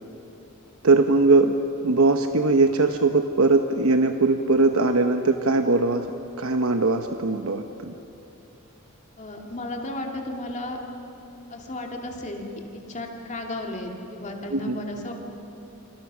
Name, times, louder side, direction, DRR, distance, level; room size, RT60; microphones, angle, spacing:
voice 1, 0.8-1.5 1.8-6.1 6.4-7.9 14.5-14.8, right 3 dB, 85° right, 6 dB, 1.0 m, -20 dB
voice 2, 9.2-10.8 11.5-12.5 12.7-15.1, left 1 dB, 35° left, 1 dB, 2.5 m, -34 dB
29.0 x 27.5 x 6.3 m, 2.9 s
head